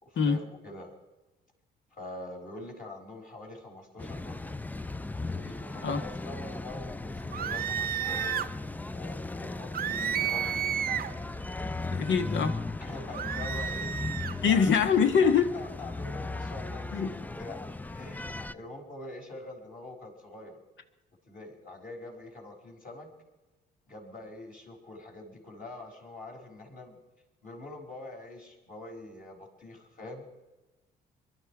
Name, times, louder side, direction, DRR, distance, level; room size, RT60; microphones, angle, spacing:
voice 1, 0.0-0.9 1.9-4.5 5.3-8.5 8.9-10.5 12.8-14.9 15.2-17.6 18.0-20.6 21.3-23.1 23.9-27.0 27.4-30.3, left 2 dB, 40° left, 0 dB, 5.2 m, -45 dB
sound 1, 4.0-18.5, left 2 dB, 10° left, 0.4 m, -37 dB
sound 2, 7.3-8.5 9.7-11.2 13.1-14.4, right 9 dB, 45° right, 0.5 m, -31 dB
voice 2, 11.9-12.6 14.4-15.5 16.9-17.1, left 6 dB, 65° left, 8 dB, 1.4 m, -24 dB
22.5 x 12.0 x 4.9 m, 1.1 s
supercardioid pair, 60°, 21 cm